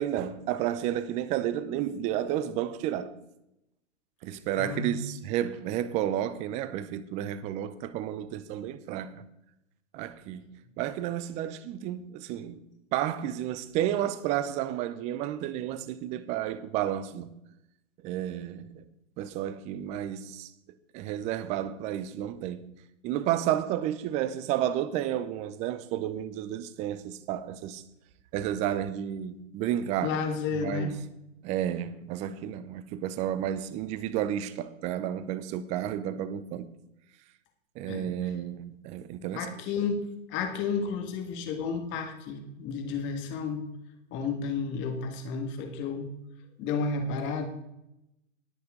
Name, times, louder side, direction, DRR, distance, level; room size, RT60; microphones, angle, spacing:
voice 1, 0.0-3.2 4.2-9.2 9.9-12.6 12.9-17.3 18.0-18.8 19.2-20.5 20.9-22.7 23.0-27.8 28.3-30.2 30.6-31.0 31.4-36.7 37.8-39.5, right 11 dB, 20° right, 0.5 m, -31 dB
voice 2, 4.6-5.0 30.0-30.9 37.9-38.1 39.3-43.6 44.1-46.1 46.6-47.5, left 5 dB, 30° left, 2.0 m, -32 dB
19.5 x 6.9 x 3.8 m
hypercardioid pair, 125°, 39 cm